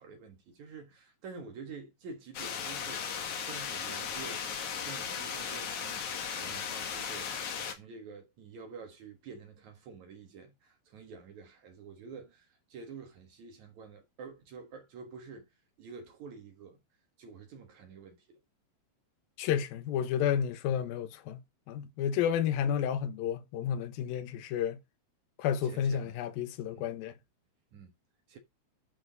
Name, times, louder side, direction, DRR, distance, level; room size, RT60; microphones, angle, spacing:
voice 1, 0.0-6.0 6.4-15.5 15.8-16.8 17.2-18.4 25.6-26.2 26.7-26.8 27.7-27.9 28.3-28.4, right 5 dB, 55° right, 2.2 m, -48 dB
sound 1, 2.3-7.7, left 7 dB, 55° left, 2.4 m, -36 dB
voice 2, 19.4-21.4 21.7-24.8 25.4-27.1, left 9 dB, 70° left, 2.4 m, -31 dB
12.5 x 4.5 x 4.1 m
omnidirectional pair, 5.3 m